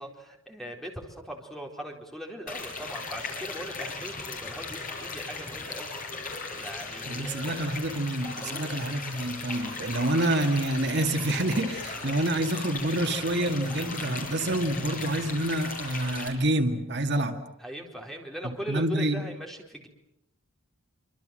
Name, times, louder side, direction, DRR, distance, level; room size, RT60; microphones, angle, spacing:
voice 1, 0.0-6.0 6.6-7.7 8.4-8.7 14.8-14.9 17.6-19.9, right 1 dB, ahead, 1 dB, 4.2 m, -40 dB
sound 1, 2.5-16.3, left 3 dB, 40° left, 6.9 m, -37 dB
voice 2, 7.1-17.4 18.4-19.2, right 1 dB, 55° right, 5 dB, 2.0 m, -27 dB
27.0 x 25.5 x 7.7 m, 0.83 s
head